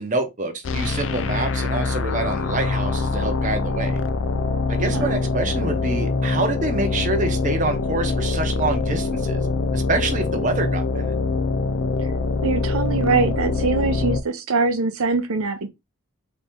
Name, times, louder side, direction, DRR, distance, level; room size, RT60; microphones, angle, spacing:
voice 1, 0.0-4.0 4.7-9.4 9.7-11.1, right 2 dB, 35° right, 0.9 m, -26 dB
sound 1, 0.6-14.2, left 3 dB, 65° left, 0.4 m, -24 dB
voice 2, 4.8-5.2 12.4-15.7, right 3 dB, 85° right, 0.7 m, -23 dB
3.8 x 3.0 x 3.5 m
head